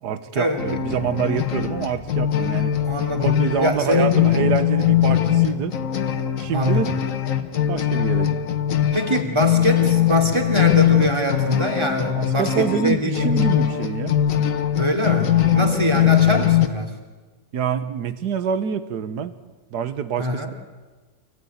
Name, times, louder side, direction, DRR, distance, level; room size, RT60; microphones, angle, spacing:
voice 1, 0.0-2.7 3.2-5.7 6.4-6.9 7.7-8.4 12.1-14.1 15.4-15.7 17.5-19.3 19.7-20.5, right 7 dB, 85° right, 12 dB, 1.6 m, -26 dB
sound 1, 0.6-16.7, left 11 dB, 55° left, 1.5 m, -21 dB
voice 2, 2.9-3.3 3.6-4.1 6.5-6.9 8.9-13.3 14.8-16.9 20.2-20.5, equal, 15° right, 2 dB, 3.2 m, -23 dB
27.0 x 17.0 x 9.4 m, 1.3 s
omnidirectional pair, 1.7 m